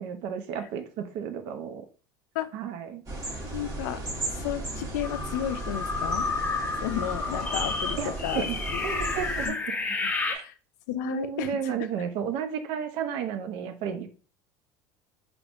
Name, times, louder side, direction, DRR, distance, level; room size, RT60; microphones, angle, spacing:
voice 1, 0.0-1.9 2.5-3.0 8.0-9.8 10.3-10.4 11.0-14.1, right 8 dB, 65° right, 8 dB, 0.6 m, -33 dB
sound 1, 3.1-9.5, right 2 dB, 40° right, 1.3 m, -35 dB
voice 2, 3.4-6.3 6.8-8.4 8.7-8.8 9.5-9.6 10.2-10.5 10.9-11.7, left 11 dB, 85° left, 10 dB, 0.4 m, -33 dB
sound 2, 5.0-10.4, left 3 dB, 20° left, 0.5 m, -31 dB
3.3 x 3.1 x 2.5 m, 0.37 s
supercardioid pair, 90°, 9 cm